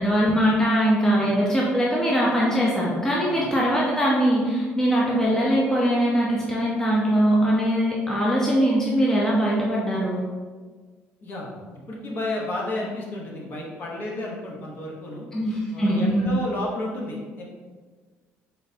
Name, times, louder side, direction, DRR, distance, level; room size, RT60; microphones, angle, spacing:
voice 1, 0.0-10.2 15.3-16.3, equal, 10° left, -5 dB, 0.6 m, -21 dB
voice 2, 11.2-15.3 15.7-17.4, left 2 dB, 45° left, -3 dB, 1.0 m, -32 dB
4.1 x 3.8 x 2.7 m, 1.5 s
cardioid pair, 140°, 5 cm